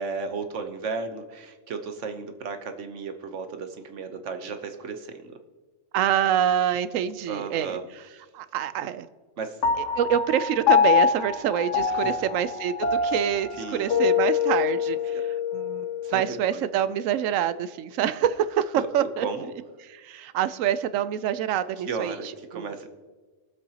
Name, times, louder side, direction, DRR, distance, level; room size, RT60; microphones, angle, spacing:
voice 1, 0.0-5.4 7.3-7.8 8.1-8.2 9.4-9.6 11.9-12.3 13.6-14.1 15.1-15.2 16.0-16.7 18.7-18.9 19.2-19.5 21.9-22.9, right 4 dB, 70° right, 7 dB, 1.2 m, -34 dB
voice 2, 5.9-7.8 8.3-9.1 9.8-15.2 15.5-15.9 16.1-19.3 19.9-22.1 22.5-22.7, right 10 dB, 90° right, 14 dB, 1.0 m, -26 dB
Piano, 9.6-16.3, left 6 dB, 70° left, 1.1 m, -25 dB
22.0 x 7.6 x 2.9 m, 1.3 s
omnidirectional pair, 1.3 m